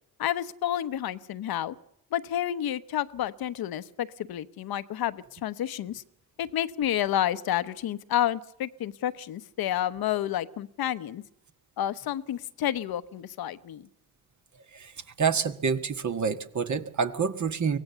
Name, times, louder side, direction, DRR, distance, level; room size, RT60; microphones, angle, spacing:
voice 1, 0.2-1.7 2.1-6.0 6.4-11.2 11.8-13.9, left 11 dB, 60° left, 13 dB, 1.0 m, -30 dB
voice 2, 15.2-17.8, right 6 dB, 45° right, 9 dB, 1.7 m, -27 dB
24.0 x 17.5 x 6.9 m, 0.77 s
hypercardioid pair, 50°, 41 cm